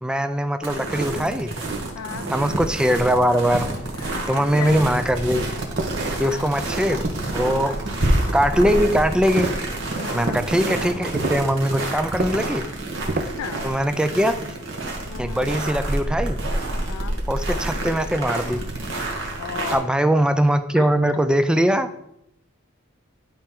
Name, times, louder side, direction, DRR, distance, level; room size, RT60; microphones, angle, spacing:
voice 1, 0.0-1.6 2.3-3.7 4.3-5.5 6.2-7.7 8.3-9.5 10.1-12.7 13.6-14.4 15.2-16.4 17.3-18.6 19.7-21.9, equal, 5° right, 9 dB, 0.3 m, -21 dB
sound 1, 0.6-19.8, right 1 dB, 60° right, 1.5 m, -28 dB
voice 2, 2.0-2.3 4.0-4.7 6.2-6.5 7.4-7.8 9.9-10.4 13.0-13.1 13.4-13.7 15.1-15.5 16.9-17.2 19.4-19.9 20.8-20.9, left 7 dB, 75° left, 9 dB, 0.4 m, -35 dB
sound 2, 2.5-2.9 3.5-4.2 4.7-5.2 5.8-6.4 7.0-7.7 9.4-9.7 10.3-10.5 11.1-11.5 12.1-12.5 13.1-13.5, right 2 dB, 40° right, 0.7 m, -30 dB
11.5 x 4.3 x 3.7 m, 0.80 s
head